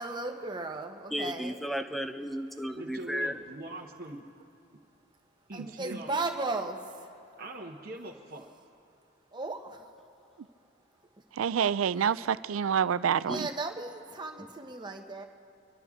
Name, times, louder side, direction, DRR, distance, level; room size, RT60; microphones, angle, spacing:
voice 1, 0.0-1.7 5.5-7.1 9.3-9.9 13.2-15.2, right 3 dB, 20° right, 4 dB, 0.9 m, -36 dB
voice 2, 1.1-3.3 13.3-13.4, equal, ahead, 8 dB, 0.4 m, -34 dB
voice 3, 2.7-4.2 5.5-6.1 7.4-8.5 14.4-14.5, right 1 dB, 45° right, -4 dB, 1.0 m, -42 dB
voice 4, 11.3-13.5, right 7 dB, 80° right, 16 dB, 0.4 m, -27 dB
26.5 x 12.0 x 3.6 m, 2.6 s
head